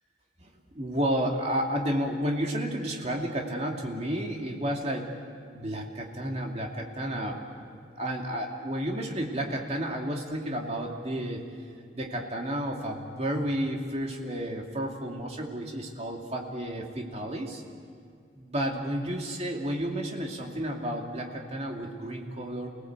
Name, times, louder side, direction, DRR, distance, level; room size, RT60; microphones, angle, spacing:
voice 1, 0.7-5.1 5.5-7.6 8.0-11.4 11.9-17.6 18.4-22.7, equal, 35° right, 1 dB, 2.7 m, -31 dB
29.5 x 18.0 x 8.0 m, 2.3 s
head